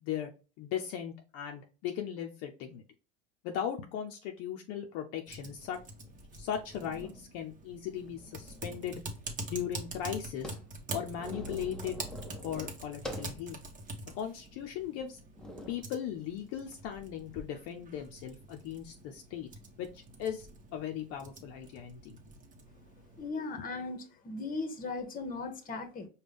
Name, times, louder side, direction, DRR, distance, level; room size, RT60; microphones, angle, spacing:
voice 1, 0.0-0.3 0.6-2.8 3.4-5.8 6.3-9.0 9.5-10.6 10.9-12.0 12.4-13.6 14.1-15.2 15.7-19.5 19.8-22.2 23.6-23.7, left 9 dB, 55° left, 3 dB, 0.6 m, -38 dB
Typing, 5.3-23.3, right 2 dB, 25° right, 1.1 m, -46 dB
sound 1, 6.0-6.1 6.7-7.3 7.9-9.0 9.3-9.4 9.6-13.4 13.9-14.0 14.7-14.9 15.3-15.9 16.8-17.4, equal, ahead, 0.7 m, -45 dB
voice 2, 23.2-26.1, left 3 dB, 30° left, 7 dB, 1.1 m, -38 dB
5.1 x 2.3 x 3.4 m, 0.34 s
supercardioid pair, 110°, 29 cm